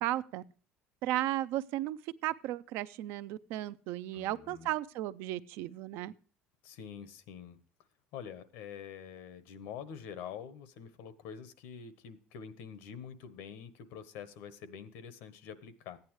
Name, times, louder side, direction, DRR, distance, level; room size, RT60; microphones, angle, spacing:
voice 1, 0.0-0.4 1.0-6.1, right 14 dB, 65° right, 15 dB, 0.5 m, -35 dB
voice 2, 4.1-4.7 6.6-7.6 8.1-16.0, left 7 dB, 80° left, 14 dB, 1.1 m, -46 dB
14.5 x 9.5 x 3.1 m, 0.38 s
cardioid pair, 170°, 4 cm